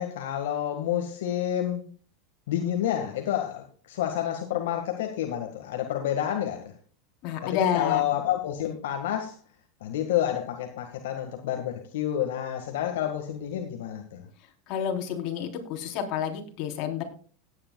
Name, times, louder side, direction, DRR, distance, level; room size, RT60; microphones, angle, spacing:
voice 1, 0.0-1.8 2.5-6.6 7.4-9.4 9.8-14.2, left 11 dB, 80° left, 3 dB, 1.7 m, -29 dB
voice 2, 7.2-8.0 14.7-17.0, left 8 dB, 55° left, 2 dB, 3.7 m, -29 dB
17.5 x 9.9 x 2.3 m, 0.41 s
supercardioid pair, 115°, 0 cm